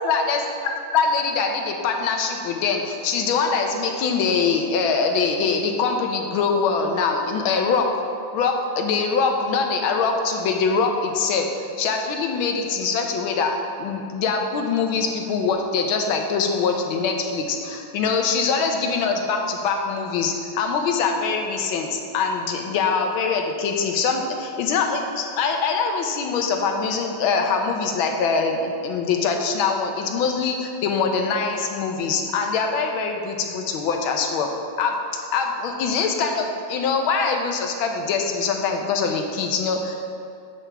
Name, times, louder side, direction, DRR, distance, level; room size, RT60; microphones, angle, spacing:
voice 1, 0.0-8.0 8.3-34.5 34.8-40.0, left 5 dB, 75° left, 3 dB, 1.6 m, -23 dB
8.3 x 7.2 x 3.4 m, 2.4 s
omnidirectional pair, 2.3 m